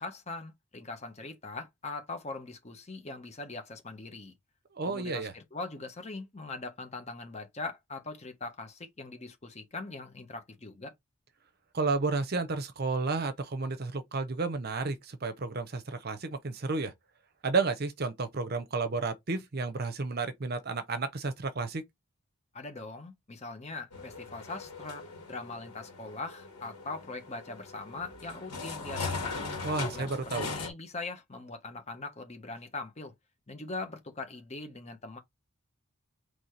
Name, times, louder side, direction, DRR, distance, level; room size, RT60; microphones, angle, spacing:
voice 1, 0.0-4.3 4.9-10.9 22.5-29.5 29.8-30.1 30.4-33.1 33.5-35.2, left 3 dB, 30° left, 1.0 m, -41 dB
voice 2, 4.7-5.3 11.7-16.9 17.4-21.8 29.6-30.5, right 3 dB, 45° right, 0.7 m, -32 dB
sound 1, 23.9-30.7, left 4 dB, 90° left, 2.0 m, -39 dB
4.1 x 3.2 x 3.2 m
head